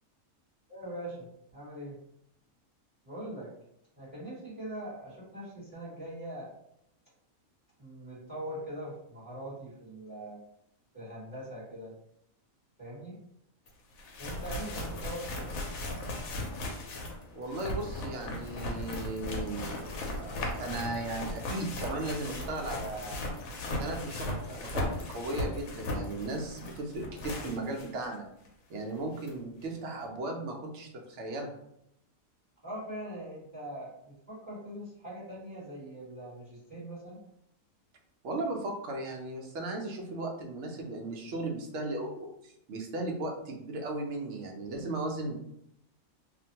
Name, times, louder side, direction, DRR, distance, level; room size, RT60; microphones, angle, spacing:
voice 1, 0.7-2.0 3.0-3.5 3.9-6.5 7.8-10.4 10.9-11.9 12.8-13.1 14.2-15.5 32.6-37.2, right 1 dB, 15° right, -10 dB, 1.0 m, -42 dB
sound 1, 13.7-13.8 14.0-28.1 28.5-28.6 29.3-29.4, left 1 dB, 80° left, 1.0 m, -37 dB
voice 2, 17.3-23.2 23.7-24.8 25.1-28.3 28.7-31.5 38.2-45.4, right 2 dB, 65° right, 1 dB, 0.8 m, -36 dB
2.5 x 2.1 x 2.8 m, 0.77 s
omnidirectional pair, 1.4 m